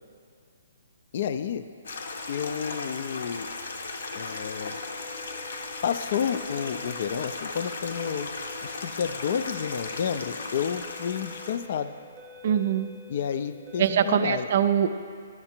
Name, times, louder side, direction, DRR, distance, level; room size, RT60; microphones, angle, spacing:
voice 1, 1.1-1.6 2.3-3.5 4.1-4.8 5.8-8.3 8.6-11.9 13.1-14.5, left 8 dB, 45° left, 11 dB, 0.4 m, -30 dB
Stream, 1.8-11.6, left 3 dB, 70° left, 0.8 m, -36 dB
sound 1, 4.0-14.3, left 2 dB, 10° right, 1.0 m, -49 dB
voice 2, 12.4-12.9 13.8-14.9, right 9 dB, 45° right, 11 dB, 0.3 m, -23 dB
11.0 x 5.8 x 4.4 m, 2.2 s
hypercardioid pair, 170°, 0 cm